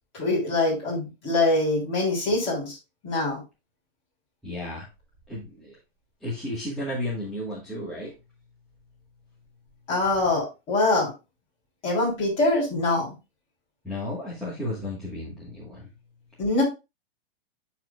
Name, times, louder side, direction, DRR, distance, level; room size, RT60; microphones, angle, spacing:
voice 1, 0.1-2.7 3.0-3.4 9.9-11.1 11.8-13.1 16.4-16.6, left 2 dB, 20° left, -4 dB, 3.2 m, -24 dB
voice 2, 4.4-4.9 5.3-5.7 6.2-8.1 13.8-15.9, left 1 dB, ahead, -9 dB, 1.2 m, -33 dB
12.0 x 4.3 x 2.2 m, 0.27 s
supercardioid pair, 175°, 30 cm